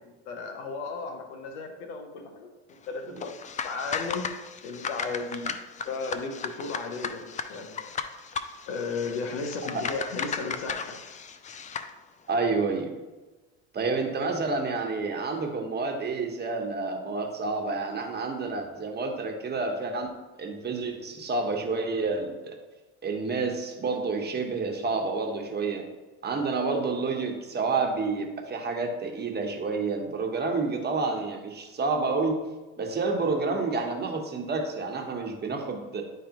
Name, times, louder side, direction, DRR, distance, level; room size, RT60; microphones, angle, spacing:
voice 1, 0.0-2.5 2.9-3.3 3.6-4.2 4.6-5.6 5.8-7.9 8.7-11.0, left 4 dB, 90° left, 5 dB, 0.9 m, -35 dB
sound 1, 3.2-11.9, left 6 dB, 25° left, 0.4 m, -36 dB
voice 2, 12.3-12.9 13.7-20.1 20.4-22.5 23.0-25.9 26.2-32.5 32.8-36.0, right 3 dB, 30° right, 2 dB, 1.1 m, -29 dB
9.9 x 3.3 x 2.9 m, 1.2 s
supercardioid pair, 85°, 33 cm